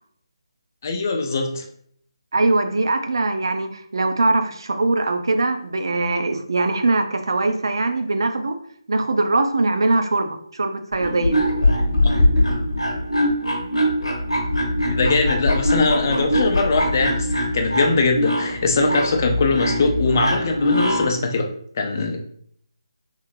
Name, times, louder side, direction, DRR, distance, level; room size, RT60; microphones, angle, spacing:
voice 1, 0.8-1.6 14.9-21.5 21.7-22.2, left 3 dB, 35° left, 3 dB, 0.5 m, -21 dB
voice 2, 2.3-8.6 8.9-11.4, right 2 dB, 55° right, 6 dB, 0.4 m, -21 dB
sound 1, 10.9-21.2, left 1 dB, 65° left, 0.8 m, -22 dB
3.7 x 2.1 x 3.2 m, 0.62 s
figure-of-eight pair, 150°, 3 cm